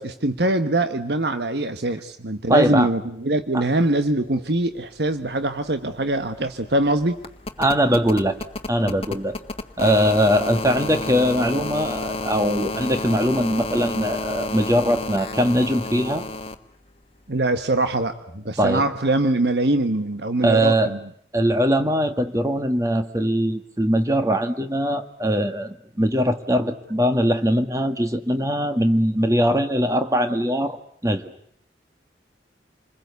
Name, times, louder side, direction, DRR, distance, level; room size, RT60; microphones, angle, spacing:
voice 1, 0.0-7.2 17.3-21.0, right 2 dB, 75° right, 9 dB, 1.4 m, -23 dB
voice 2, 2.5-2.9 7.6-8.4 8.7-9.4 9.8-16.2 18.6-18.8 20.4-20.9 21.3-31.3, equal, 20° right, 8 dB, 1.7 m, -21 dB
sound 1, 5.3-5.4 5.6-16.6 18.0-18.1, left 2 dB, 35° left, 1.5 m, -31 dB
28.0 x 21.5 x 8.3 m, 0.67 s
head